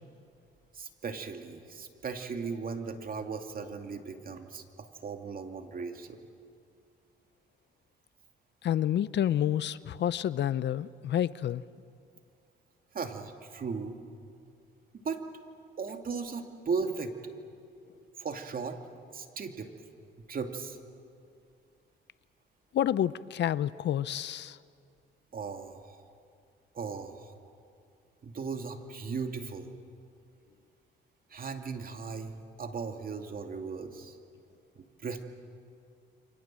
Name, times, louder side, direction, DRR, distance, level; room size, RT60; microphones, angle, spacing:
voice 1, 0.7-6.2 12.9-14.0 14.9-15.2 15.8-17.1 18.2-18.8 19.1-19.7 20.2-20.8 25.3-26.0 26.7-27.3 28.2-29.7 31.3-34.2 34.8-35.2, right 5 dB, 45° right, 5 dB, 2.6 m, -37 dB
voice 2, 8.6-11.6 22.7-24.6, left 10 dB, 65° left, 17 dB, 0.7 m, -29 dB
29.0 x 25.5 x 7.6 m, 2.4 s
cardioid pair, 90°, 20 cm